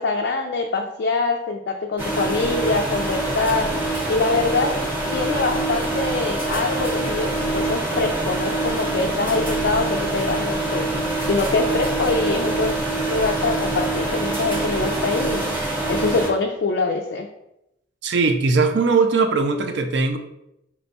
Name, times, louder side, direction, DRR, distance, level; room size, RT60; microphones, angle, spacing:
voice 1, 0.0-3.7 4.1-4.8 5.1-12.7 13.1-15.5 15.9-17.3, left 3 dB, 65° left, 2 dB, 0.3 m, -24 dB
sound 1, 2.0-16.3, right 2 dB, 10° right, 0.7 m, -25 dB
voice 2, 18.0-20.2, right 4 dB, 70° right, 7 dB, 0.5 m, -19 dB
4.3 x 2.3 x 4.0 m, 0.84 s
head